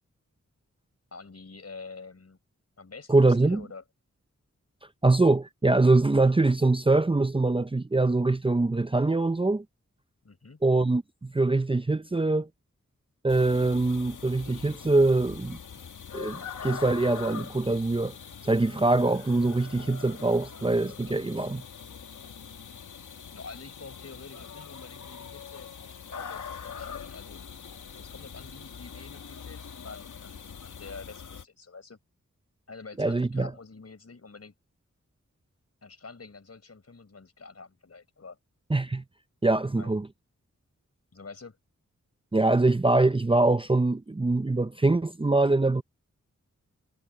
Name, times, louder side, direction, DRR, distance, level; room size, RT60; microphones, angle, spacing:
voice 1, 1.1-2.4 2.8-3.8 10.2-10.6 23.3-27.4 27.9-32.0 32.7-34.5 35.8-38.4 39.7-40.0 41.1-41.6, left 4 dB, 55° left, 5.1 m, -47 dB
voice 2, 3.1-3.6 5.0-9.6 10.6-12.5 13.2-15.6 16.1-18.1 18.4-21.6 33.0-33.5 38.7-39.0 39.4-40.1 42.3-45.8, right 2 dB, 15° right, 0.7 m, -23 dB
sound 1, 13.3-31.4, left 7 dB, 85° left, 1.3 m, -43 dB
cardioid pair, 55°, 30 cm